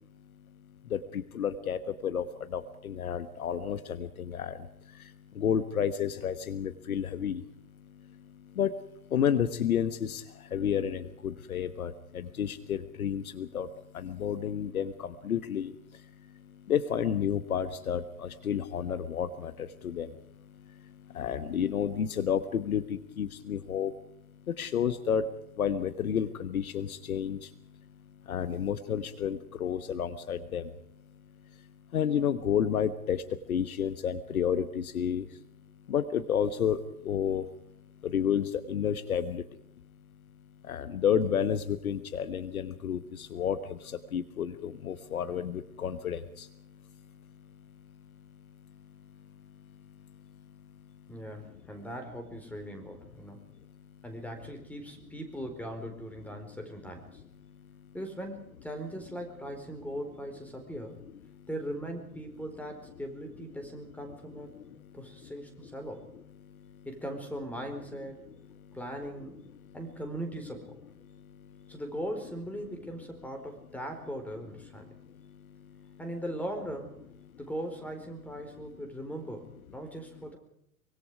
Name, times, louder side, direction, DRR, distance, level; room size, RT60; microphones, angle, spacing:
voice 1, 0.9-2.2 2.5-4.6 5.4-7.4 8.6-8.7 9.1-10.2 10.5-13.7 13.9-15.7 16.7-19.5 19.8-20.1 21.1-23.9 24.5-25.2 25.6-27.4 28.3-30.6 31.9-33.2 33.5-35.2 35.9-37.4 38.0-39.4 40.7-43.6 44.1-46.2, left 8 dB, 65° left, 12 dB, 1.4 m, -30 dB
voice 2, 51.1-53.4 54.0-57.2 57.9-61.0 61.5-64.6 64.9-66.0 66.8-68.2 68.7-69.3 69.7-70.8 71.7-74.9 76.0-77.0 77.4-80.4, right 1 dB, 5° left, 5 dB, 4.3 m, -39 dB
24.0 x 23.0 x 4.9 m, 0.72 s
figure-of-eight pair, 95°, 46 cm